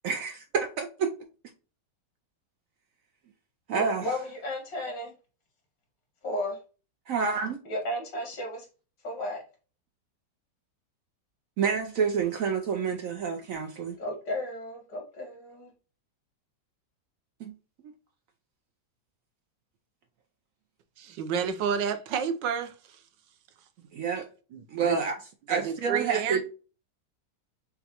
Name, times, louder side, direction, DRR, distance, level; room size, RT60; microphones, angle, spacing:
voice 1, 0.0-1.1 3.7-4.1 7.1-7.6 11.6-14.0 17.4-17.5 23.9-24.3 24.7-25.2 25.5-26.4, right 6 dB, 70° right, 0.8 m, -28 dB
voice 2, 3.7-5.1 6.2-6.6 7.6-8.7 9.0-9.4 14.0-15.7, left 1 dB, 85° left, 2.4 m, -34 dB
voice 3, 21.0-22.7 24.5-25.0 25.5-26.4, right 7 dB, 90° right, 1.4 m, -30 dB
6.1 x 2.3 x 2.8 m
omnidirectional pair, 1.9 m